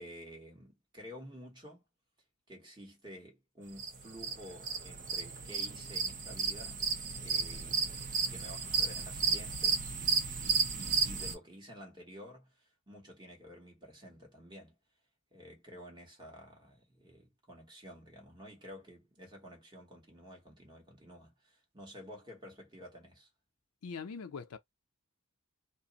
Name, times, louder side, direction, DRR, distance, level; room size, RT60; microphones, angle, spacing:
voice 1, 0.0-1.8 2.5-6.8 7.2-14.8 15.3-23.3, equal, 20° right, 1.3 m, -51 dB
sound 1, 3.8-11.3, right 5 dB, 40° right, 0.6 m, -33 dB
voice 2, 23.8-24.6, left 5 dB, 85° left, 0.5 m, -42 dB
2.5 x 2.0 x 3.9 m
head